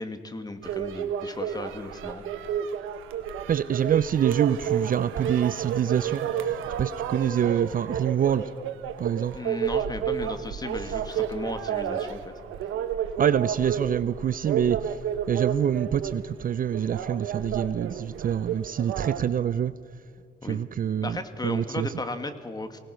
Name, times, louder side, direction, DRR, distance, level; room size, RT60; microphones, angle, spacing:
voice 1, 0.0-2.2 9.3-12.3 20.4-20.6 21.0-22.8, left 2 dB, 20° left, 8 dB, 1.8 m, -35 dB
sound 1, 0.6-19.2, right 8 dB, 90° right, 1.1 m, -31 dB
voice 2, 3.5-8.5 9.0-9.4 13.2-15.0 15.3-19.7 20.4-22.0, right 9 dB, 45° right, 15 dB, 0.5 m, -26 dB
24.0 x 18.5 x 6.4 m, 2.1 s
cardioid pair, 90°, 20 cm